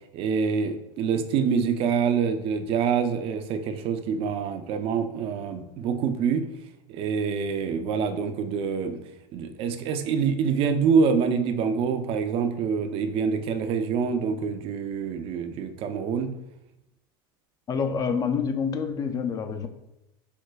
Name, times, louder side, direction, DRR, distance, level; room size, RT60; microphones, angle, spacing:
voice 1, 0.1-6.4 6.9-9.0 9.3-16.3, right 6 dB, 50° right, 8 dB, 0.4 m, -26 dB
voice 2, 17.7-19.7, left 6 dB, 30° left, 8 dB, 0.4 m, -27 dB
4.5 x 2.2 x 2.2 m, 0.89 s
hypercardioid pair, 90°, 12 cm